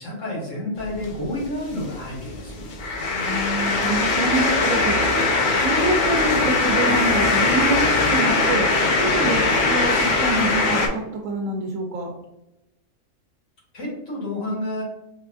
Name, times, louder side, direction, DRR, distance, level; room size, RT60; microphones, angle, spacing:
voice 1, 0.0-2.7 13.7-14.8, left 1 dB, 75° left, -5 dB, 1.8 m, -30 dB
sound 1, 0.8-10.9, left 3 dB, 55° left, 0.6 m, -21 dB
voice 2, 3.1-5.0 5.6-8.6 9.0-12.1, right 2 dB, 80° right, 0 dB, 1.0 m, -26 dB
4.6 x 2.4 x 2.3 m, 0.93 s
omnidirectional pair, 1.3 m